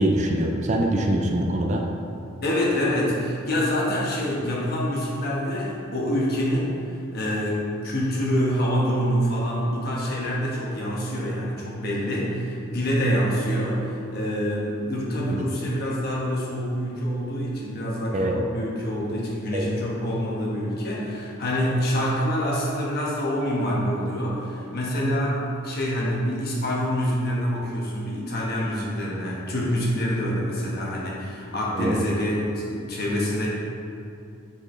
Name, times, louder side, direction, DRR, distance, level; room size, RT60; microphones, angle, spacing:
voice 1, 0.0-1.8 15.3-15.4 18.1-18.3 19.5-19.7 31.8-32.0, right 1 dB, 35° right, 1 dB, 0.5 m, -23 dB
voice 2, 2.4-6.7 7.1-33.5, equal, 50° left, -5 dB, 1.3 m, -26 dB
6.9 x 4.8 x 3.2 m, 2.6 s
head